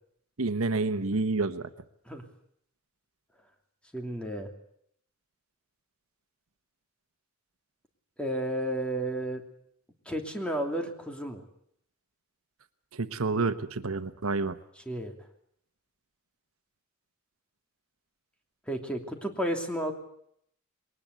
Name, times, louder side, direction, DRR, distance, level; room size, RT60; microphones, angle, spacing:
voice 1, 0.4-1.7 12.9-14.6, right 3 dB, 75° right, 10 dB, 1.1 m, -29 dB
voice 2, 3.9-4.5 8.2-9.4 10.0-11.4 14.9-15.1 18.7-19.9, right 1 dB, 5° left, 3 dB, 2.9 m, -32 dB
22.0 x 19.5 x 8.2 m, 0.70 s
head